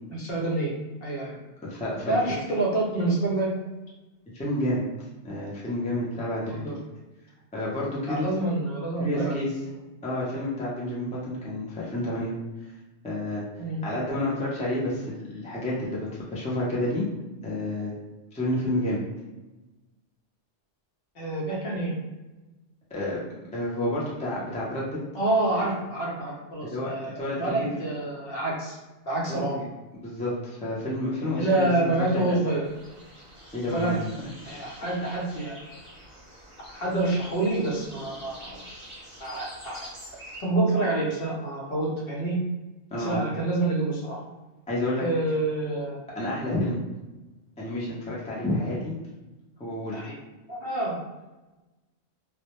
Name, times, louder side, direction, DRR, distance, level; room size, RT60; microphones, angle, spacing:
voice 1, 0.1-0.7 1.0-1.4 2.1-3.5 6.5-6.7 8.1-9.4 13.6-13.8 21.2-21.9 25.1-28.8 29.1-29.6 31.4-32.6 33.6-34.0 34.4-35.8 36.7-38.6 39.2-39.8 40.4-42.4 42.9-44.2 45.0-46.0 49.9-50.2 50.5-51.0, right 2 dB, 60° left, -3 dB, 0.8 m, -27 dB
voice 2, 1.6-2.2 4.3-4.8 5.2-6.8 7.5-8.3 9.0-9.5 10.0-12.3 13.0-13.4 13.8-17.0 17.4-17.9 18.3-19.0 22.9-23.2 23.5-25.0 26.6-26.9 27.2-27.7 29.3-29.7 30.0-32.4 33.5-33.9 34.4-34.7 42.9-43.2 44.7-45.0 46.2-46.8 47.6-48.9 49.6-50.0, left 1 dB, 10° left, -6 dB, 0.3 m, -30 dB
sound 1, 32.6-40.4, equal, 30° right, 0.8 m, -46 dB
2.1 x 2.1 x 2.9 m, 1.1 s
omnidirectional pair, 1.2 m